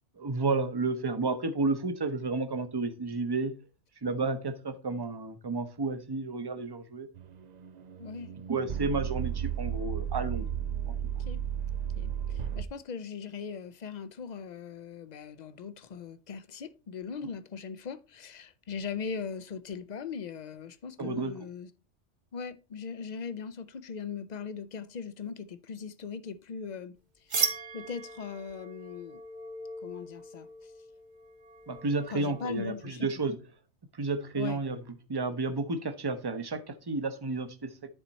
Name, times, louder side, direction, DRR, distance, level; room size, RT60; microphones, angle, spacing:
voice 1, 0.2-3.5 4.0-7.1 8.5-10.5 21.0-21.3 31.7-33.4 33.9-34.8 35.1-37.7, right 3 dB, 25° right, 0.7 m, -31 dB
sound 1, 7.1-12.6, right 9 dB, 65° right, 0.4 m, -34 dB
voice 2, 8.0-8.3 11.3-11.4 12.0-21.7 22.3-26.9 27.3-29.2 29.8-30.7 32.1-33.1 34.3-34.6, left 6 dB, 50° left, 0.5 m, -40 dB
sound 2, 27.3-32.9, right 4 dB, 40° right, 1.0 m, -37 dB
10.0 x 4.3 x 4.1 m
omnidirectional pair, 1.2 m